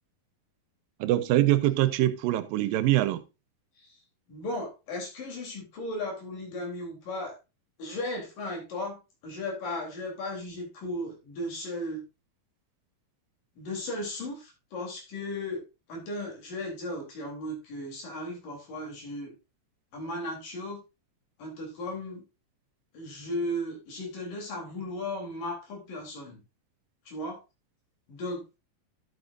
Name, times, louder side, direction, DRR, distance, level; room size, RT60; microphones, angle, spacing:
voice 1, 1.0-3.2, right 14 dB, 85° right, 2.5 m, -24 dB
voice 2, 4.3-7.4 7.8-12.0 13.6-15.6 15.9-19.3 19.9-20.8 21.4-22.2 22.9-26.4 27.1-27.4 28.1-28.4, left 1 dB, 70° left, 5.2 m, -36 dB
12.5 x 8.1 x 2.6 m
omnidirectional pair, 3.9 m